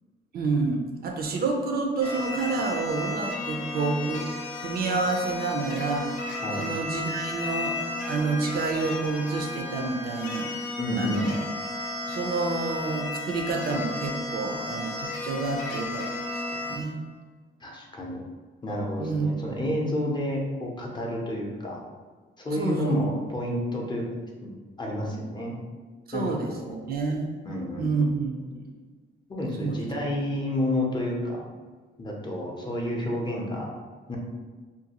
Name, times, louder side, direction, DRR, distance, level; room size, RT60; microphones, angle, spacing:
voice 1, 0.3-4.3 4.6-7.8 8.1-11.4 12.1-17.0 19.0-19.6 22.5-23.0 26.1-27.3 27.8-28.7 29.6-29.8, right 3 dB, 50° right, 2 dB, 0.4 m, -29 dB
sound 1, 2.0-16.8, left 2 dB, 80° left, 0.6 m, -34 dB
voice 2, 10.8-11.2 17.6-18.2 18.6-21.8 22.4-24.0 24.4-24.5 24.8-25.6 26.1-26.8 27.5-28.2 29.3-31.4 32.0-33.7 34.1-34.2, left 1 dB, 20° left, -2 dB, 0.6 m, -30 dB
2.5 x 2.3 x 2.8 m, 1.4 s
cardioid pair, 90°, 20 cm